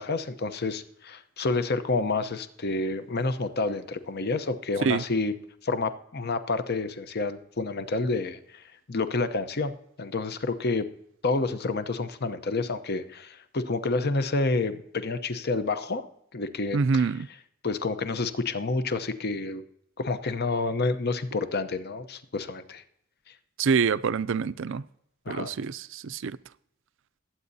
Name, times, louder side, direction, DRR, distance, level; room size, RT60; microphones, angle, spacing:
voice 1, 0.0-5.4 5.6-9.7 10.0-10.9 11.2-16.0 16.3-17.1 17.6-19.6 20.0-22.8 25.3-25.5, left 3 dB, 50° left, 0.8 m, -29 dB
voice 2, 16.7-17.3 23.6-24.8 25.3-26.3, right 5 dB, 65° right, 0.4 m, -26 dB
20.5 x 8.7 x 2.7 m
head